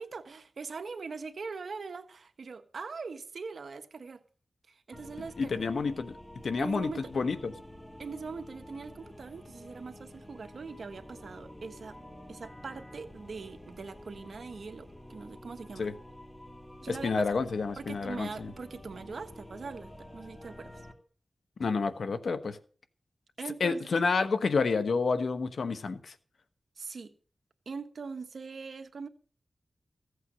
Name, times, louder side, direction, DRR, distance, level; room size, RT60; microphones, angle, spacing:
voice 1, 0.0-4.2 4.7-5.7 6.6-7.1 8.0-12.0 12.3-15.9 16.8-20.8 23.4-23.9 26.8-27.1 27.6-29.1, right 4 dB, 75° right, 1.3 m, -42 dB
sound 1, 4.9-20.9, left 1 dB, 15° left, 2.8 m, -49 dB
voice 2, 5.4-6.2 6.4-7.5 15.8-15.9 16.9-18.5 21.6-22.6 23.6-26.1, left 4 dB, 80° left, 1.1 m, -29 dB
15.5 x 8.2 x 6.3 m
cardioid pair, 60°, 0 cm